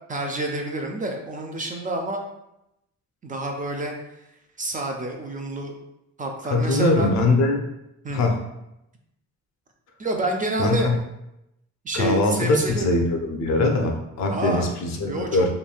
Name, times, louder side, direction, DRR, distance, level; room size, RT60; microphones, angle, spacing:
voice 1, 0.1-2.2 3.2-3.9 4.6-5.8 6.2-7.1 8.0-8.2 10.0-10.9 11.8-12.9 14.3-14.7 15.0-15.6, right 1 dB, 25° right, 2 dB, 0.4 m, -28 dB
voice 2, 6.5-7.7 8.1-8.4 10.6-10.9 11.9-15.6, left 2 dB, 65° left, 2 dB, 0.6 m, -22 dB
3.1 x 2.6 x 2.3 m, 0.86 s
cardioid pair, 90°, 30 cm